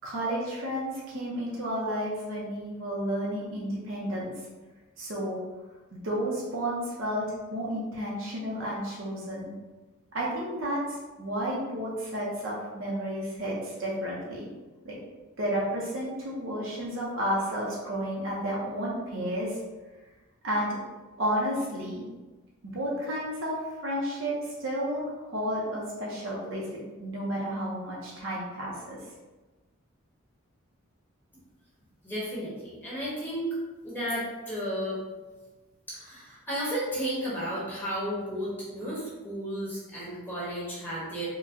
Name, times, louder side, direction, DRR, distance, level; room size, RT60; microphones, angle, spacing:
voice 1, 0.0-4.4 5.0-5.4 5.9-7.3 7.5-9.6 10.1-14.5 14.8-15.0 15.4-19.6 20.4-20.8 21.2-22.1 22.6-29.0, equal, 65° right, -5 dB, 0.8 m, -32 dB
voice 2, 32.0-33.5 33.8-35.0 35.9-41.3, equal, 10° left, -9 dB, 1.2 m, -33 dB
4.6 x 2.3 x 2.6 m, 1.2 s
head